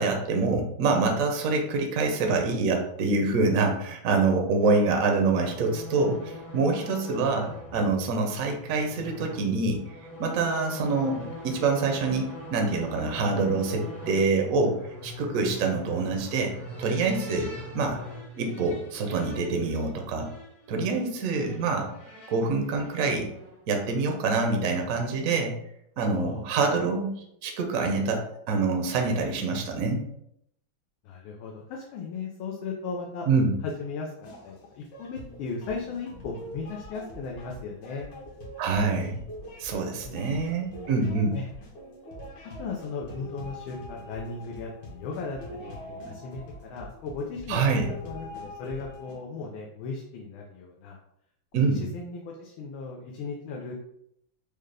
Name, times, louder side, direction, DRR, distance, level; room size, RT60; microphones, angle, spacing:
voice 1, 0.0-9.8 10.2-14.8 15.0-16.5 16.8-18.0 18.4-20.3 20.7-21.9 22.3-23.3 23.7-25.5 26.0-27.1 27.4-30.0 33.3-33.5 38.6-39.2 39.6-41.4 47.5-47.9 51.5-51.8, right 3 dB, 70° right, 3 dB, 0.8 m, -26 dB
sound 1, 4.6-23.7, left 1 dB, 15° left, 0.6 m, -42 dB
voice 2, 26.1-26.6 31.0-33.3 33.6-38.1 40.0-40.4 41.3-41.5 42.6-51.0 51.6-53.7, left 4 dB, 90° left, -1 dB, 1.5 m, -37 dB
sound 2, 34.2-49.1, equal, 60° left, 1.5 m, -43 dB
5.0 x 2.2 x 3.2 m, 0.75 s
omnidirectional pair, 2.2 m